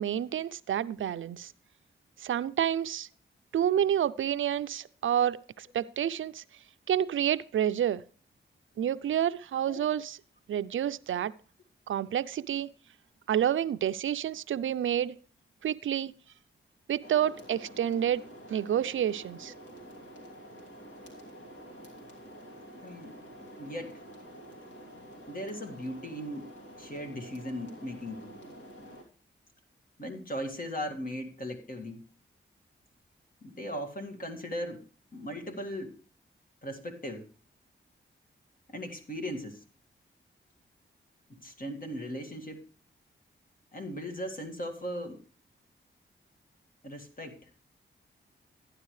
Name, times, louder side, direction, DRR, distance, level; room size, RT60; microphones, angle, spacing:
voice 1, 0.0-1.5 2.2-3.1 3.5-6.4 6.9-8.0 8.8-10.2 10.5-11.3 11.9-12.7 13.3-15.2 15.6-16.1 16.9-18.2 18.5-19.5, right 10 dB, 80° right, 0.5 m, -29 dB
sound 1, 17.0-29.0, equal, 70° left, 3.0 m, -48 dB
voice 2, 22.8-23.2 23.6-24.0 25.3-26.5 26.8-28.4 30.0-32.0 33.4-34.8 35.1-36.0 36.6-37.3 38.7-39.6 41.3-42.6 43.7-45.2 46.8-47.5, equal, 45° left, 2.0 m, -38 dB
12.5 x 10.0 x 3.1 m
cardioid pair, 55°, 20 cm